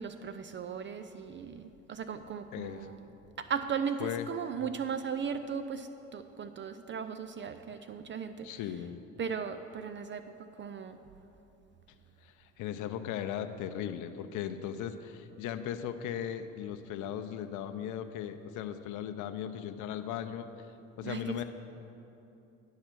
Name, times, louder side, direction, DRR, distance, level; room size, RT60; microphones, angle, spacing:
voice 1, 0.0-3.1 3.4-8.9 9.2-11.0 21.0-21.4, right 6 dB, 35° right, 10 dB, 0.4 m, -37 dB
voice 2, 2.5-2.9 4.0-4.3 8.4-9.0 12.2-20.5 21.0-21.4, left 10 dB, 60° left, 9 dB, 0.6 m, -37 dB
10.0 x 5.6 x 6.2 m, 2.8 s
hypercardioid pair, 60°, 36 cm